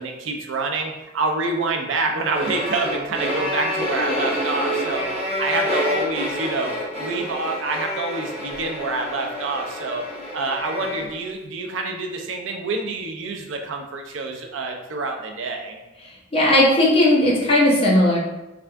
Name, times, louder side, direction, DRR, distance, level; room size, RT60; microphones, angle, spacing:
voice 1, 0.0-5.1 5.4-10.0 10.3-15.8, right 3 dB, 75° right, 3 dB, 0.5 m, -27 dB
sound 1, 2.3-11.2, left 1 dB, 30° right, 0.9 m, -28 dB
voice 2, 16.3-18.2, left 1 dB, 30° left, -5 dB, 0.8 m, -16 dB
3.4 x 2.4 x 3.3 m, 0.99 s
head